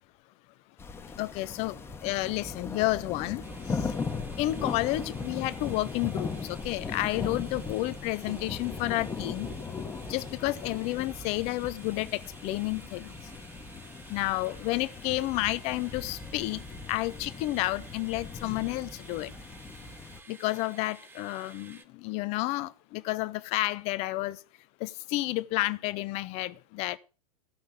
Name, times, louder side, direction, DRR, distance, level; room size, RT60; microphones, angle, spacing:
sound 1, 0.8-20.2, left 4 dB, 15° left, 1.3 m, -38 dB
voice 1, 1.2-3.9 4.4-9.5 10.1-13.1 14.1-16.6 16.9-19.3 20.3-24.4 24.8-27.0, left 18 dB, 35° left, 0.8 m, -31 dB
sound 2, 3.4-21.8, right 3 dB, 10° right, 1.5 m, -53 dB
15.0 x 6.4 x 8.0 m
figure-of-eight pair, 95°, 19 cm